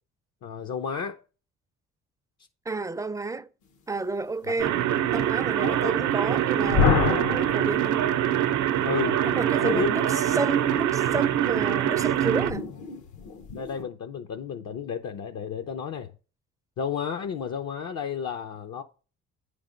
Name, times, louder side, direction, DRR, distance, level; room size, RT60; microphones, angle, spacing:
voice 1, 0.4-1.2 4.5-4.6 5.6-5.9 8.8-9.2 9.6-9.9 13.6-16.1 16.8-18.8, left 7 dB, 60° left, 0.7 m, -32 dB
voice 2, 2.7-3.5 3.9-4.8 5.1-8.1 9.2-12.7, right 3 dB, 10° right, 0.4 m, -30 dB
sound 1, 4.6-12.5, right 11 dB, 75° right, 0.6 m, -24 dB
sound 2, 6.6-8.5 11.5-13.8, left 6 dB, 75° left, 1.1 m, -28 dB
9.0 x 3.4 x 5.1 m
cardioid pair, 90°, 30 cm